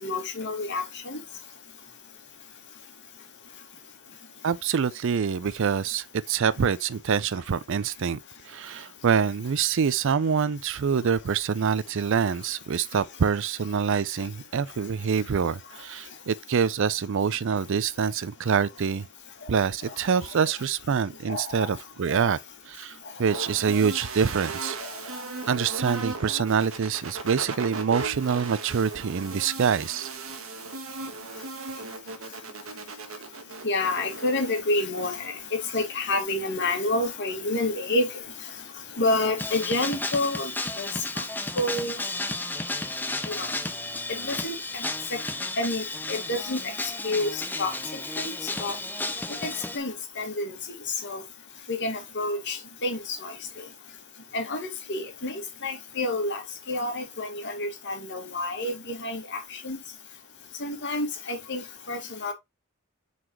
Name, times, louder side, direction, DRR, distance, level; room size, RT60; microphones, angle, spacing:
voice 1, 0.0-1.2 21.3-21.7 22.2-22.3 23.7-23.8 33.6-35.3 35.7-38.1 39.0-40.5 40.8-40.9 41.2-41.3 41.6-42.0 43.3-43.5 44.2-44.8 45.1-45.2 45.6-46.6 47.0-47.7 48.2-48.3 48.6-48.7 49.4-49.5 49.7-50.6 51.0-51.2 51.7-53.3 54.3-56.4 56.7-59.8 60.6-62.3, left 2 dB, 60° left, 1.8 m, -29 dB
voice 2, 4.4-8.2 8.4-19.1 19.5-22.4 22.7-24.8 25.0-25.2 25.5-30.1, right 6 dB, 65° right, 0.4 m, -25 dB
sound 1, 23.3-34.6, right 3 dB, 80° right, 1.3 m, -37 dB
sound 2, 39.4-49.8, left 2 dB, 10° left, 0.7 m, -33 dB
7.7 x 4.1 x 2.9 m
head